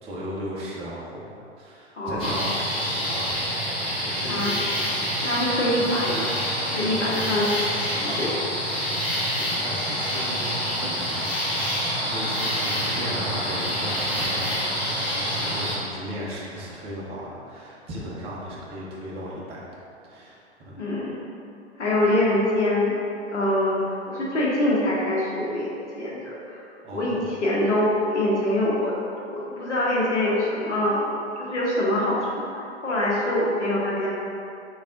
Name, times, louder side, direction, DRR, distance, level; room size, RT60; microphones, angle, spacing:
voice 1, 0.0-3.7 4.0-4.7 5.1-5.2 9.3-14.9 15.3-20.8 26.8-27.3, equal, 15° right, -6 dB, 0.5 m, -36 dB
voice 2, 1.9-2.3 4.3-4.8 5.2-6.4 6.7-7.5 7.9-8.4 20.8-21.2 21.8-22.9 23.3-26.6 26.9-28.9 29.3-31.1 31.4-34.1, left 1 dB, 90° left, -6 dB, 0.9 m, -24 dB
sound 1, 2.2-15.7, equal, 15° left, 1.3 m, -27 dB
3.4 x 2.4 x 3.6 m, 2.5 s
hypercardioid pair, 115°, 35 cm